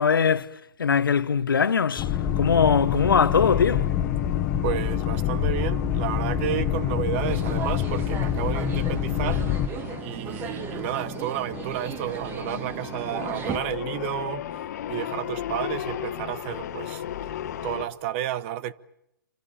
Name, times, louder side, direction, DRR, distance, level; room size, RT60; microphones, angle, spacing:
voice 1, 0.0-2.1 2.4-3.9, left 6 dB, 75° left, 1.1 m, -21 dB
sound 1, 1.9-17.9, left 10 dB, 45° left, 1.5 m, -37 dB
sound 2, 2.0-9.7, left 10 dB, 20° left, 1.7 m, -26 dB
voice 2, 4.6-9.4 10.0-14.4 14.9-17.0 17.6-18.7, right 11 dB, 35° right, 0.9 m, -31 dB
sound 3, 7.1-13.6, right 7 dB, 20° right, 1.5 m, -36 dB
28.0 x 24.5 x 7.1 m
figure-of-eight pair, 130°, 12 cm